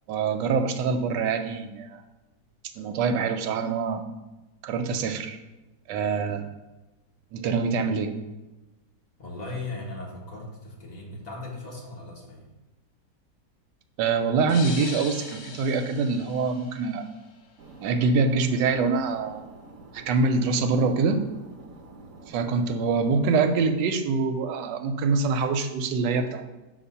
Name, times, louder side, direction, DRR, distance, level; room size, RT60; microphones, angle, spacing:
voice 1, 0.1-2.0 2.7-4.0 4.6-5.4 5.9-6.5 7.3-8.1 14.0-17.0 17.8-19.4 19.9-21.2 22.3-26.5, right 4 dB, 85° right, 7 dB, 1.2 m, -25 dB
voice 2, 9.2-12.4, left 2 dB, 25° left, -2 dB, 1.1 m, -38 dB
sound 1, 14.5-17.3, left 5 dB, 80° left, 1.4 m, -40 dB
sound 2, 17.6-23.7, right 3 dB, 65° right, 0.9 m, -47 dB
6.5 x 2.7 x 5.5 m, 1.1 s
omnidirectional pair, 1.9 m